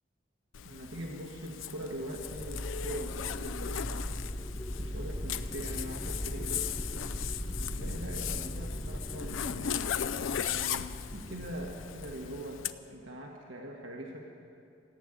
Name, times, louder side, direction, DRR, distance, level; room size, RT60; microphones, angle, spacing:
Zipper (clothing), 0.5-12.7, left 9 dB, 80° left, 0.5 m, -38 dB
voice 1, 0.6-3.9 4.8-6.8 7.6-9.7 10.5-14.3, right 1 dB, 85° right, -1 dB, 1.5 m, -42 dB
sound 1, 2.2-12.8, equal, 15° left, 0.5 m, -39 dB
14.5 x 8.9 x 9.9 m, 2.5 s
head